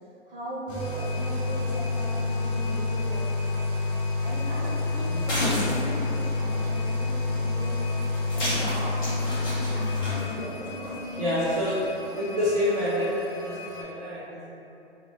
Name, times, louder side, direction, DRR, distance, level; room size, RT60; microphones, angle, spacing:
voice 1, 0.3-3.3 4.2-7.8 8.3-11.3 12.0-12.4, equal, 50° right, -8 dB, 1.0 m, -38 dB
sound 1, 0.7-10.0, left 3 dB, 50° left, 0.9 m, -28 dB
sound 2, 0.8-13.8, left 2 dB, 80° left, 0.6 m, -43 dB
sound 3, 4.2-11.9, left 1 dB, 20° left, 0.7 m, -35 dB
voice 2, 11.2-11.8 12.1-14.4, left 1 dB, 35° right, -11 dB, 0.4 m, -27 dB
2.7 x 2.7 x 2.8 m, 2.9 s
hypercardioid pair, 165°, 35 cm